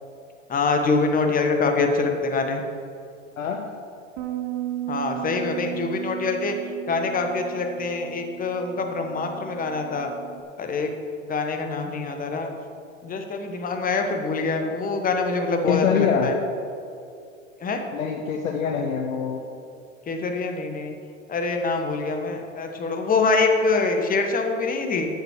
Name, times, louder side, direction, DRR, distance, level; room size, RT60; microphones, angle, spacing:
voice 1, 0.5-2.6 4.9-6.5 6.9-10.1 10.6-10.9 11.2-12.5 13.0-16.3 17.6-17.8 20.1-20.9 21.3-25.1, left 3 dB, 20° left, 4 dB, 1.3 m, -25 dB
voice 2, 3.4-3.7 15.7-16.3 17.9-19.4, left 6 dB, 90° left, 2 dB, 1.0 m, -24 dB
Bass guitar, 4.2-10.4, right 13 dB, 45° right, 1.1 m, -35 dB
7.9 x 7.0 x 7.3 m, 2.5 s
hypercardioid pair, 105°, 39 cm